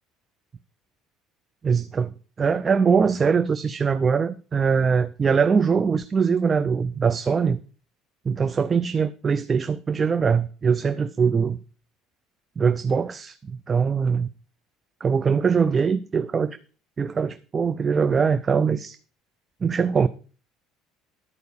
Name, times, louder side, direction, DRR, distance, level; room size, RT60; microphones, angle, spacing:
voice 1, 1.6-7.6 8.3-11.6 12.6-14.3 15.0-16.6 17.0-19.0 19.6-20.1, right 6 dB, 20° right, 0.4 m, -22 dB
11.5 x 4.7 x 6.8 m
cardioid pair, 165°, 0 cm